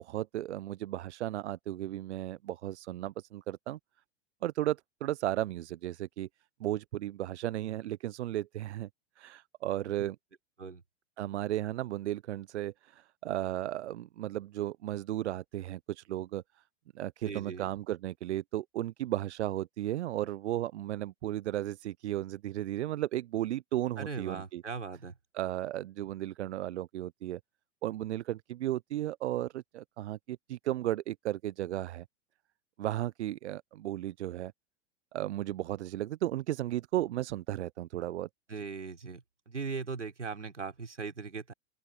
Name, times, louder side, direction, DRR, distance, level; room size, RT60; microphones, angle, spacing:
voice 1, 0.0-3.8 4.4-6.3 6.6-8.9 9.2-10.2 11.2-16.4 16.9-24.6 25.3-27.4 27.8-32.0 32.8-34.5 35.1-38.3, right 14 dB, 70° right, 0.6 m, -34 dB
voice 2, 17.3-17.7 24.0-25.2 38.5-41.5, right 5 dB, 90° right, 4.1 m, -39 dB
open air
figure-of-eight pair, 95°, 35 cm